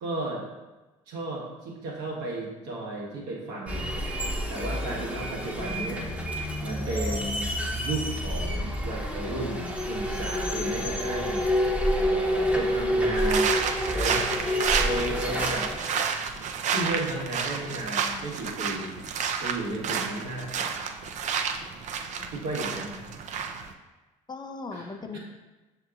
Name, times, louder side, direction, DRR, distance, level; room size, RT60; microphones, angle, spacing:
voice 1, 0.0-0.4 1.1-3.9 4.5-6.1 6.6-7.5 7.8-11.4 11.9-13.5 13.9-14.3 14.8-15.7 16.7-18.9 19.4-20.8 22.3-23.1 24.7-24.8 25.1-25.2, right 2 dB, 75° right, -3 dB, 1.1 m, -34 dB
sound 1, 3.7-15.8, equal, 10° right, 0.8 m, -28 dB
sound 2, 13.2-23.7, right 6 dB, 45° right, 0.4 m, -30 dB
voice 2, 22.0-22.5 24.3-25.2, left 4 dB, 25° left, 4 dB, 0.4 m, -39 dB
6.4 x 2.8 x 2.4 m, 1.1 s
hypercardioid pair, 60°, 16 cm